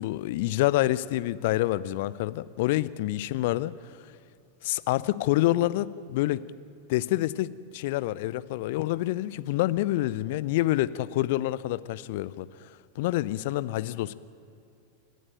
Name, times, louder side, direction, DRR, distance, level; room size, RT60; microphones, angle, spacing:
voice 1, 0.0-3.7 4.6-6.4 6.9-12.7 13.0-14.1, left 16 dB, 50° left, 17 dB, 0.6 m, -27 dB
29.0 x 11.0 x 9.1 m, 2.6 s
figure-of-eight pair, 90°, 0 cm